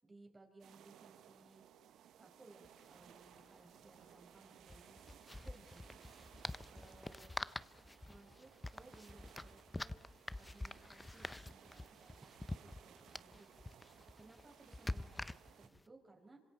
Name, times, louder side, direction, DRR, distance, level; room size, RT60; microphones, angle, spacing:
voice 1, 0.0-1.6 2.2-5.0 5.4-6.0 6.7-7.3 8.1-10.0 10.4-13.5 14.2-16.4, right 2 dB, 20° right, 2 dB, 5.1 m, -62 dB
sound 1, 0.6-15.7, right 10 dB, 75° right, 0.8 m, -62 dB
sound 2, 2.6-2.7 3.0-3.1 4.6-15.8, left 2 dB, 10° left, 0.6 m, -47 dB
26.5 x 26.0 x 4.4 m, 1.2 s
cardioid pair, 105°, 0 cm